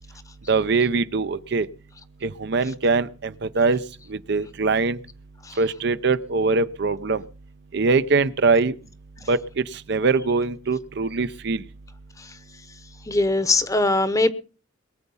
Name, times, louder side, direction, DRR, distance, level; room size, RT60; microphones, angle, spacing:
voice 1, 0.5-1.7 2.2-3.8 4.1-5.0 5.6-7.2 7.7-8.7 9.3-9.4 9.9-11.6, right 4 dB, 60° right, 0.6 m, -22 dB
voice 2, 13.1-14.3, left 2 dB, 15° left, 0.9 m, -20 dB
22.0 x 8.0 x 5.5 m
head